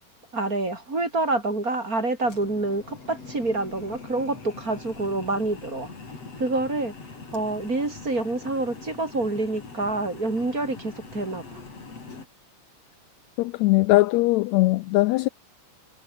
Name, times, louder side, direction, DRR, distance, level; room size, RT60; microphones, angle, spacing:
voice 1, 0.3-5.9 6.4-6.9 7.3-11.6, right 2 dB, 25° right, 4.5 m, -27 dB
sound 1, 2.2-12.3, left 4 dB, 50° left, 6.4 m, -42 dB
voice 2, 13.4-15.3, left 20 dB, 85° left, 1.6 m, -20 dB
omnidirectional pair, 3.6 m